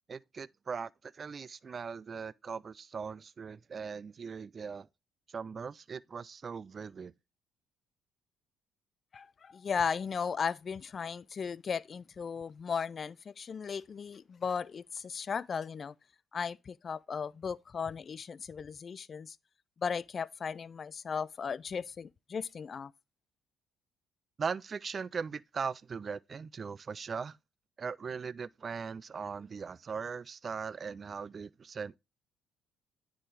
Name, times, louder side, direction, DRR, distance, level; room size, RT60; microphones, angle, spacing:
voice 1, 0.1-4.9 5.3-7.1 24.4-27.4 27.8-32.0, right 5 dB, 45° right, 0.3 m, -39 dB
voice 2, 9.1-15.9 16.3-19.4 19.8-22.9, left 6 dB, 45° left, 0.3 m, -36 dB
9.7 x 3.8 x 3.4 m
hypercardioid pair, 60°, 0 cm